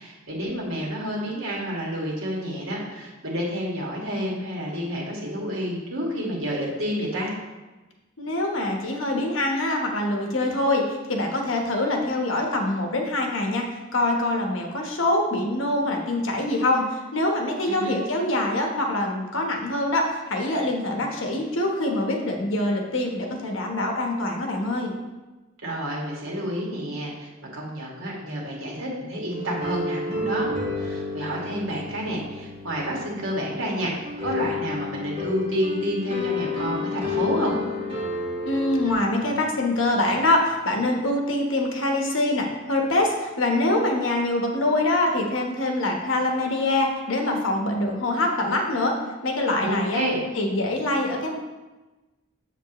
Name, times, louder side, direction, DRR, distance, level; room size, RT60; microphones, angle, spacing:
voice 1, 0.0-7.3 17.7-18.0 25.6-30.5 30.8-33.9 34.2-37.5 49.6-50.2, equal, 90° right, -3 dB, 2.1 m, -29 dB
voice 2, 8.2-13.6 13.9-24.9 38.4-48.9 49.2-50.0 50.3-51.4, left 1 dB, 70° left, 1 dB, 1.2 m, -24 dB
sound 1, 29.3-38.9, left 3 dB, 30° right, 1.7 m, -30 dB
7.3 x 7.3 x 3.1 m, 1.2 s
head